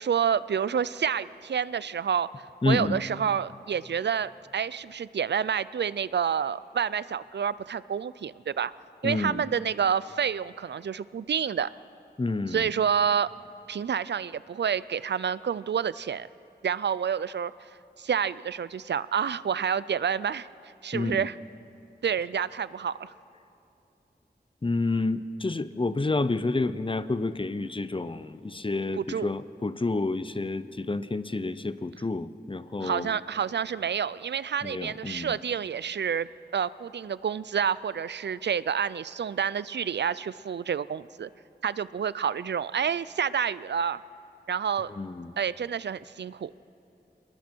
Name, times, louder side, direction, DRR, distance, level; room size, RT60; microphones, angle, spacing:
voice 1, 0.0-8.7 9.0-11.7 12.5-13.3 13.7-16.3 16.6-17.5 18.0-20.5 20.8-21.3 22.0-23.1 29.0-29.3 32.8-36.3 36.5-41.3 41.6-44.0 44.5-44.9 45.4-46.5, right 7 dB, 85° right, 18 dB, 0.4 m, -28 dB
voice 2, 2.6-3.0 9.0-9.4 12.2-12.7 20.9-21.3 24.6-33.2 34.6-35.4 44.9-45.3, left 3 dB, 30° left, 14 dB, 0.7 m, -29 dB
27.5 x 20.5 x 4.5 m, 2.8 s
wide cardioid pair, 70°, 17 cm